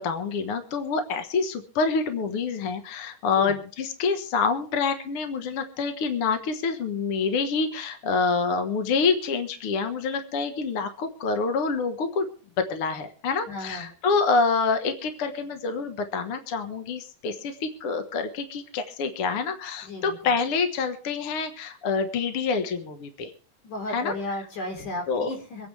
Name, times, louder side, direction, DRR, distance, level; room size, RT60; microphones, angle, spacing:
voice 1, 0.0-12.3 12.6-23.3 23.9-24.1 25.1-25.3, left 4 dB, 55° left, 7 dB, 2.0 m, -27 dB
voice 2, 13.5-13.9 19.8-20.2 23.6-25.7, left 2 dB, 75° left, 2 dB, 5.5 m, -34 dB
25.5 x 9.6 x 3.3 m, 0.41 s
omnidirectional pair, 3.6 m